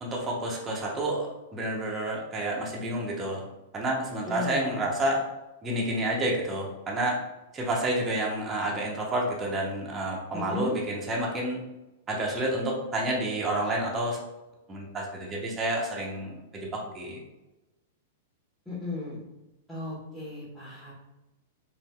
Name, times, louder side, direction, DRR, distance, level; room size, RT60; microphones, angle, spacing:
voice 1, 0.0-3.4 3.7-5.2 5.6-7.2 7.5-11.6 12.1-14.2 14.7-17.2, right 1 dB, 20° right, -2 dB, 0.7 m, -29 dB
voice 2, 4.2-4.9 10.3-10.8 18.7-19.2 19.7-20.9, left 2 dB, 5° left, -11 dB, 1.2 m, -35 dB
4.1 x 2.7 x 2.3 m, 0.99 s
figure-of-eight pair, 100°, 0 cm